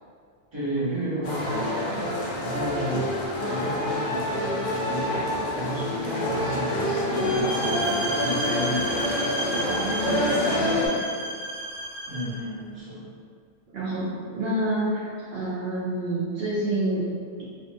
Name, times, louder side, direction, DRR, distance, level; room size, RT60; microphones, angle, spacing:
voice 1, 0.5-1.9 2.4-3.1 3.4-5.2 5.5-8.9 12.1-13.1, equal, 25° right, -11 dB, 1.0 m, -32 dB
sound 1, 1.2-10.9, left 1 dB, 60° left, 0.6 m, -27 dB
sound 2, 7.1-12.4, equal, 50° right, 0.4 m, -32 dB
voice 2, 9.7-11.0 13.7-17.0, right 1 dB, 65° right, -10 dB, 0.8 m, -28 dB
2.7 x 2.5 x 2.6 m, 2.1 s
omnidirectional pair, 1.2 m